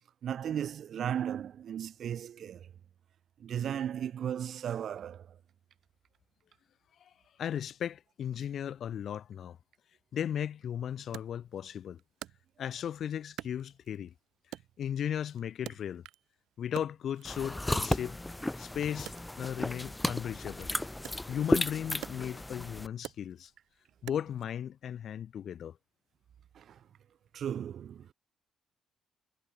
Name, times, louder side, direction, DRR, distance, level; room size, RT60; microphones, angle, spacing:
voice 1, 0.2-2.7 3.4-5.3 26.5-26.8 27.3-28.1, right 9 dB, 65° right, 0.7 m, -36 dB
voice 2, 7.4-9.6 10.1-12.0 12.6-14.1 14.8-16.0 16.6-18.2 18.6-20.7 21.3-23.5 24.0-25.8, left 9 dB, 65° left, 1.8 m, -36 dB
Wood, 11.1-12.9 13.4-14.1 14.5-16.3 16.6-18.6 19.0-24.5, right 14 dB, 85° right, 2.4 m, -48 dB
sound 1, 17.2-22.9, left 1 dB, 10° left, 0.8 m, -33 dB
cardioid pair, 90°, 0 cm